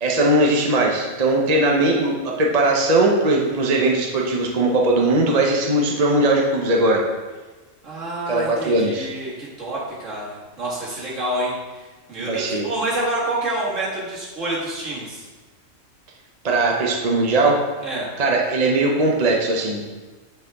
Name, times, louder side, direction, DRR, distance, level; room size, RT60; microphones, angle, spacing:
voice 1, 0.0-7.0 8.3-9.1 12.2-12.6 16.4-17.6 18.2-19.8, right 2 dB, 35° right, -1 dB, 0.8 m, -19 dB
voice 2, 7.8-11.5 12.1-15.3 17.8-18.1, right 1 dB, 65° right, -7 dB, 2.4 m, -27 dB
9.4 x 4.7 x 3.5 m, 1.2 s
omnidirectional pair, 1.4 m